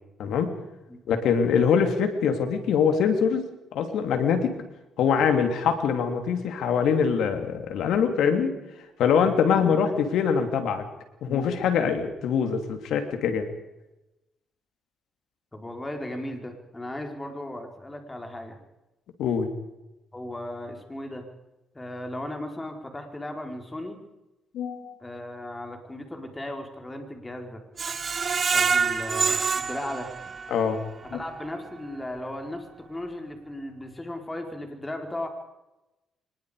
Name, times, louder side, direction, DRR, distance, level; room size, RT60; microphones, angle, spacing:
voice 1, 0.2-0.6 1.1-3.4 3.7-4.5 5.0-8.5 9.0-10.8 11.2-13.5 19.2-19.5 24.5-24.9 30.5-30.8 31.1-31.2, left 6 dB, 80° left, 6 dB, 3.1 m, -23 dB
voice 2, 15.5-18.6 20.1-21.3 21.7-24.0 25.0-27.6 28.5-30.1 31.1-35.3, left 1 dB, 15° left, 4 dB, 4.2 m, -36 dB
Screech, 27.8-30.8 31.2-31.3 31.7-31.8, right 5 dB, 40° right, 1.2 m, -26 dB
24.5 x 21.0 x 5.1 m, 0.99 s
cardioid pair, 90°, 0 cm